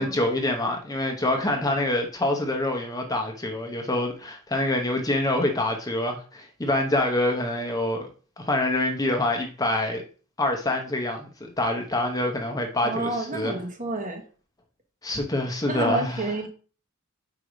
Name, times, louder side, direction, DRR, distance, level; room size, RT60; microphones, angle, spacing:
voice 1, 0.0-8.1 8.4-10.0 10.4-13.5 15.0-16.3, left 1 dB, 15° left, 0.9 m, -26 dB
voice 2, 12.8-14.2 15.7-16.5, right 2 dB, 35° right, 1.1 m, -30 dB
4.9 x 4.8 x 5.1 m
head